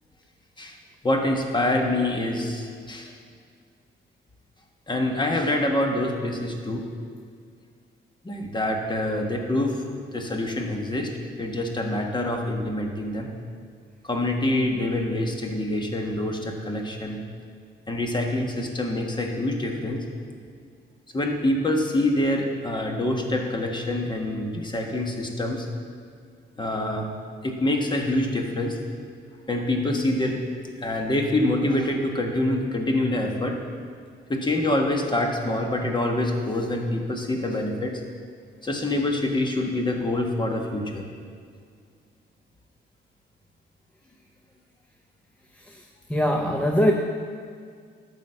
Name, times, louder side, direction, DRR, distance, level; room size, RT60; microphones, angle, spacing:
voice 1, 1.0-3.1 4.9-6.8 8.2-9.8 10.1-13.3 14.0-17.2 17.9-20.0 21.1-25.7 26.6-27.1 27.4-28.8 29.5-30.4 30.8-33.6 34.3-38.0 38.6-41.1, left 1 dB, 25° left, 2 dB, 1.4 m, -26 dB
voice 2, 45.7-46.9, equal, 5° left, 1 dB, 0.6 m, -23 dB
11.5 x 4.2 x 7.9 m, 2.1 s
cardioid pair, 90°, 20 cm